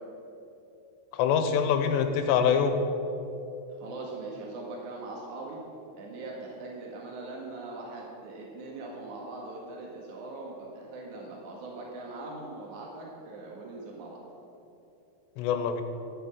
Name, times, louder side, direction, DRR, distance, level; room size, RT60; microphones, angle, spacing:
voice 1, 1.2-2.7 15.4-15.8, left 7 dB, 85° left, 7 dB, 3.1 m, -24 dB
voice 2, 3.8-5.6 5.9-14.2, right 2 dB, 55° right, -3 dB, 2.8 m, -41 dB
14.5 x 7.4 x 7.4 m, 2.9 s
omnidirectional pair, 4.9 m